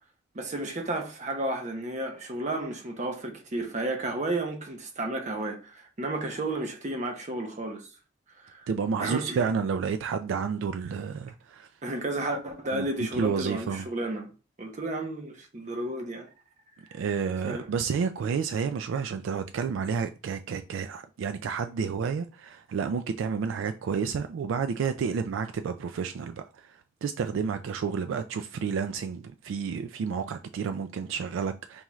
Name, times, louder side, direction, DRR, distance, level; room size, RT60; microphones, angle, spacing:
voice 1, 0.3-7.9 8.5-8.7 9.0-9.5 11.8-14.3 14.6-16.3 16.9-17.0 17.5-17.7, right 2 dB, 40° right, 0.7 m, -32 dB
voice 2, 8.7-11.7 12.7-12.9 13.1-13.9 16.9-31.8, right 6 dB, 85° right, 0.3 m, -30 dB
5.4 x 2.4 x 3.0 m
head